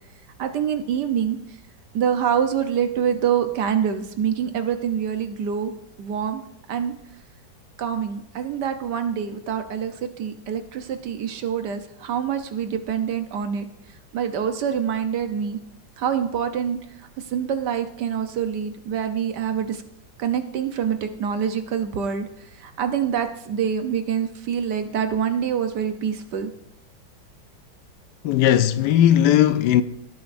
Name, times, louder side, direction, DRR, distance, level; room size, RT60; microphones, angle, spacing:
voice 1, 0.4-1.4 1.9-5.7 6.0-6.4 6.7-6.9 7.8-13.7 14.1-15.6 16.0-16.8 17.3-19.8 20.2-22.3 22.6-26.5, right 8 dB, 65° right, 1.4 m, -25 dB
voice 2, 28.2-29.8, left 11 dB, 75° left, 1.1 m, -17 dB
17.5 x 8.9 x 2.6 m
omnidirectional pair, 2.0 m